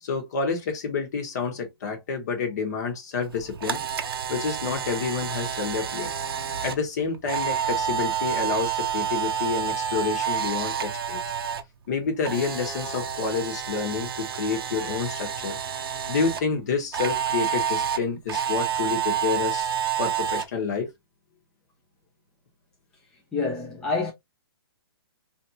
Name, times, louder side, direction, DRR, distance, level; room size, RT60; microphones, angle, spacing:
voice 1, 0.0-3.8 4.3-6.1 6.6-11.2 11.9-15.6 16.1-19.7 20.0-20.9, left 5 dB, 40° left, 1.2 m, -29 dB
Camera, 3.3-11.6 11.9-16.4 16.9-20.4, right 9 dB, 65° right, 0.5 m, -29 dB
voice 2, 23.3-24.1, left 4 dB, 5° left, 0.5 m, -27 dB
3.2 x 2.7 x 2.7 m
hypercardioid pair, 170°, 13 cm